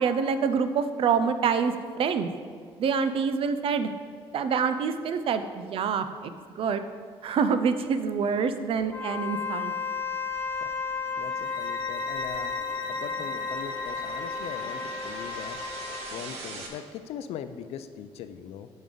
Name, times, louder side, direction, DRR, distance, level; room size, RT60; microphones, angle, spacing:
voice 1, 0.0-2.3 2.8-3.9 4.3-6.8 7.2-9.7, right 6 dB, 60° right, 10 dB, 0.5 m, -26 dB
Wind instrument woodwind instrument, 8.9-16.3, left 5 dB, 20° left, 0.6 m, -33 dB
sound 1, 9.8-16.7, right 3 dB, 90° right, 1.1 m, -44 dB
voice 2, 11.2-12.5 12.9-15.6 16.1-18.7, left 9 dB, 80° left, 11 dB, 0.5 m, -40 dB
sound 2, 11.3-16.2, left 1 dB, 50° left, 1.0 m, -40 dB
9.5 x 5.3 x 3.8 m, 2.1 s
cardioid pair, 90°, 10 cm